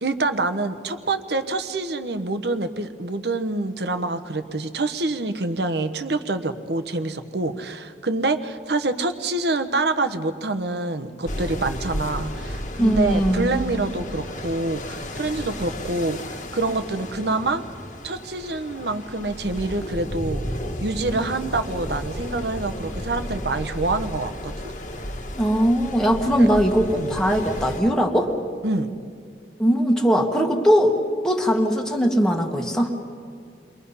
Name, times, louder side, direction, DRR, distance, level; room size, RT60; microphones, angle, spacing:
voice 1, 0.0-17.6 18.0-20.4 20.8-24.7 26.2-26.5 26.9-27.2 28.6-28.9, right 2 dB, 65° right, 8 dB, 1.1 m, -26 dB
sound 1, 11.2-27.8, equal, 45° left, 1.6 m, -33 dB
voice 2, 12.8-13.5 25.4-28.3 29.6-30.9 31.2-33.0, equal, 5° left, 0 dB, 1.5 m, -20 dB
29.5 x 22.5 x 5.6 m, 2.3 s
head